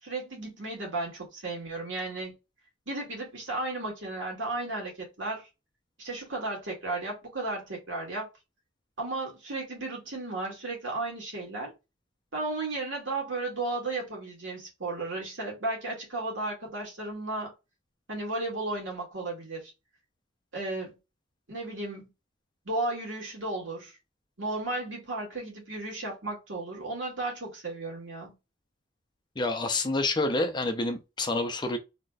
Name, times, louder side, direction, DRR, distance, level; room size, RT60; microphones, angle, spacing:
voice 1, 0.0-2.3 2.9-5.5 6.0-8.3 9.0-11.7 12.3-17.5 18.1-19.7 20.5-21.0 21.5-22.1 22.7-23.9 24.4-28.3, right 2 dB, 75° right, 2.1 m, -34 dB
voice 2, 29.4-31.8, left 2 dB, 25° left, 0.6 m, -28 dB
4.1 x 2.9 x 2.3 m
head